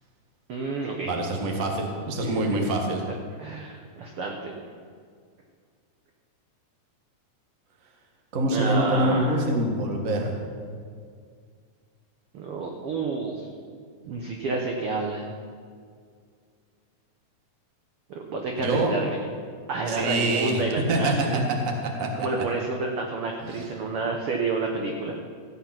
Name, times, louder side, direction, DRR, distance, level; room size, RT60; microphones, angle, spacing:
voice 1, 0.5-1.1 2.2-2.7 3.4-4.5 8.5-9.4 12.3-13.5 14.0-15.3 18.1-19.2 19.7-21.4 22.1-25.2, right 3 dB, 65° right, 2 dB, 1.5 m, -29 dB
voice 2, 1.0-3.0 8.3-10.4 18.6-18.9 19.9-20.6 20.9-21.4 22.0-22.1 23.5-23.6, right 1 dB, 40° right, 2 dB, 1.2 m, -25 dB
15.5 x 8.3 x 5.8 m, 2.1 s
omnidirectional pair, 3.7 m